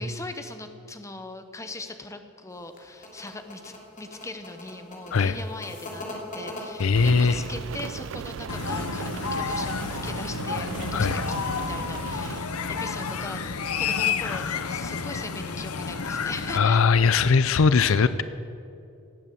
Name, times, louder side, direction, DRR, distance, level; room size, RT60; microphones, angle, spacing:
voice 1, 0.0-13.4 13.7-16.9, left 2 dB, 15° left, 8 dB, 0.8 m, -40 dB
sound 1, 2.5-7.7, left 1 dB, 35° left, 2.9 m, -40 dB
voice 2, 6.8-7.4 10.9-11.2 16.5-18.2, left 5 dB, 65° left, 14 dB, 0.5 m, -20 dB
Rain, 6.9-12.4, right 6 dB, 60° right, 0.4 m, -36 dB
sound 2, 8.5-16.6, left 5 dB, 85° left, 0.8 m, -30 dB
18.0 x 8.7 x 7.8 m, 2.6 s
head